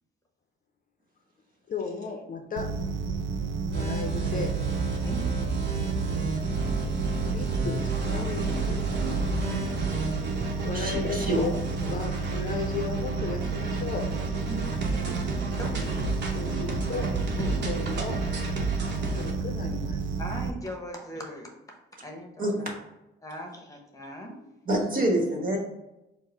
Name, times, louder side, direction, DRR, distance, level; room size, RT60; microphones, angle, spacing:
voice 1, 1.7-2.7 3.7-4.6 7.2-9.0 10.6-14.1 16.3-17.1 17.7-18.2 19.1-20.0, left 4 dB, 45° left, 4 dB, 0.6 m, -35 dB
sound 1, 2.6-20.5, right 4 dB, 75° right, 0.5 m, -31 dB
sound 2, 3.7-19.3, right 3 dB, 60° right, 0.9 m, -32 dB
voice 2, 10.7-11.4 12.2-12.4 22.4-22.5 24.7-25.6, right 1 dB, 45° right, -1 dB, 1.3 m, -26 dB
voice 3, 14.5-15.8 17.3-17.7 20.2-21.8 22.0-22.6 23.2-24.4, equal, 15° left, 0 dB, 1.0 m, -39 dB
4.5 x 2.1 x 4.6 m, 0.94 s
cardioid pair, 90°, 20 cm